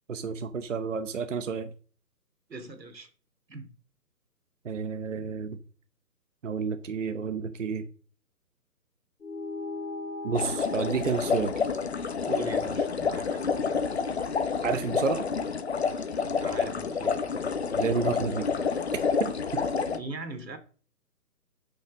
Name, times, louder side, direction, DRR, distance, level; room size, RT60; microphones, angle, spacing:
voice 1, 0.1-1.7 4.6-5.6 6.4-7.8 10.2-11.6 14.6-15.3 17.8-18.5 19.2-19.3, right 5 dB, 50° right, 10 dB, 0.9 m, -30 dB
voice 2, 2.5-3.1 3.5-3.7 12.2-13.4 16.4-17.2 19.9-20.6, right 2 dB, 85° right, 8 dB, 2.7 m, -39 dB
sound 1, 9.2-14.0, left 3 dB, 90° left, 1.7 m, -41 dB
sound 2, 10.3-20.0, left 5 dB, 40° left, 0.9 m, -29 dB
8.1 x 6.5 x 6.1 m, 0.40 s
hypercardioid pair, 165°, 49 cm